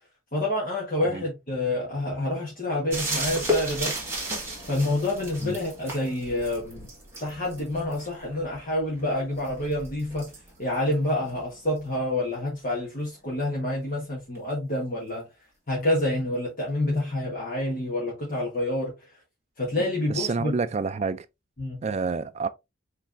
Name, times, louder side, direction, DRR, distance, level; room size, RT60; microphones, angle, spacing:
voice 1, 0.3-3.9 4.7-6.9 7.2-10.3 10.6-15.3 15.7-19.1 19.6-20.5 21.6-21.8, left 1 dB, 45° left, 1.4 m, -28 dB
sound 1, 2.9-12.3 14.3-14.4, equal, 15° right, 1.7 m, -35 dB
voice 2, 20.2-21.3 21.8-22.5, right 4 dB, 35° right, 0.3 m, -28 dB
5.1 x 3.3 x 2.6 m
head